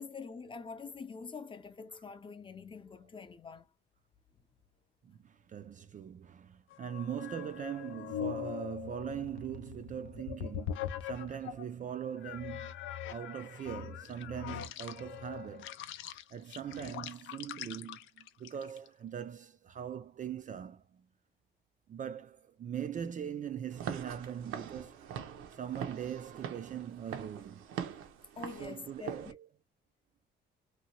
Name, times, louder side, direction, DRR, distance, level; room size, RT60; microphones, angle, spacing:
voice 1, 0.0-3.7 28.4-29.3, left 5 dB, 25° left, 0.6 m, -45 dB
voice 2, 5.0-12.7 13.1-15.8 16.3-21.1 21.9-25.1 25.5-27.7 28.6-29.5, right 9 dB, 40° right, 0.4 m, -41 dB
sound 1, 6.7-11.7 12.2-18.9, left 10 dB, 80° left, 0.5 m, -42 dB
Walk footsteps / Siren, 23.7-29.3, right 8 dB, 85° right, 0.6 m, -43 dB
2.8 x 2.2 x 2.9 m
cardioid pair, 90°, 20 cm